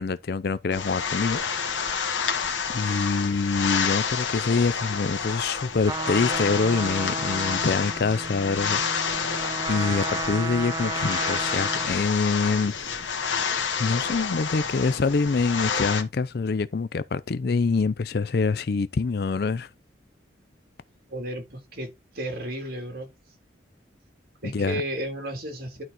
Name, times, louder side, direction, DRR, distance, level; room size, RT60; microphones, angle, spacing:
voice 1, 0.0-1.4 2.7-8.8 9.7-12.9 13.8-19.7 24.4-24.8, left 4 dB, 55° left, 0.4 m, -25 dB
sound 1, 0.7-16.0, left 6 dB, 85° left, 1.7 m, -29 dB
Trumpet, 5.8-12.1, right 3 dB, 20° right, 0.4 m, -34 dB
voice 2, 21.1-21.9 22.1-23.1 24.4-25.8, right 1 dB, 50° right, 3.5 m, -33 dB
11.5 x 4.1 x 4.5 m
head